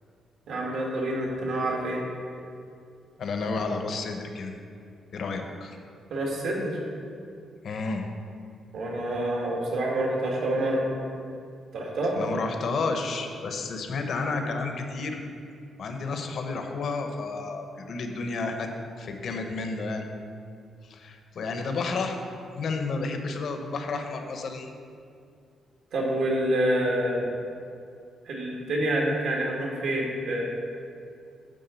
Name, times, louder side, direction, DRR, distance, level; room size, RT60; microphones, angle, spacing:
voice 1, 0.5-2.0 6.1-6.8 8.7-10.9 11.7-12.2 25.9-27.3 28.3-30.5, right 1 dB, 65° right, -2 dB, 1.8 m, -27 dB
voice 2, 3.2-4.5 5.1-5.8 7.6-8.1 12.2-15.2 15.8-18.7 19.0-20.1 20.8-22.2 22.5-24.7, left 3 dB, 55° left, 4 dB, 0.8 m, -31 dB
10.0 x 3.7 x 6.9 m, 2.4 s
cardioid pair, 150°, 0 cm